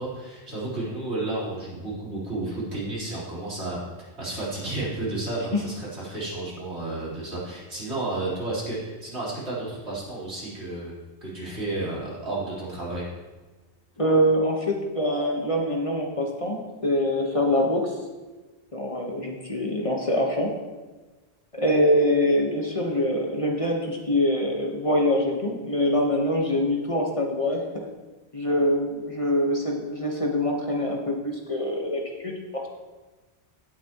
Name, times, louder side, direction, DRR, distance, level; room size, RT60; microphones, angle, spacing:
voice 1, 0.0-11.0 11.2-13.1, right 2 dB, 80° right, -8 dB, 4.3 m, -32 dB
voice 2, 14.0-18.0 18.7-20.5 21.5-27.9 28.3-32.7, left 1 dB, 30° left, 0 dB, 1.3 m, -24 dB
16.5 x 8.4 x 3.0 m, 1.2 s
omnidirectional pair, 1.1 m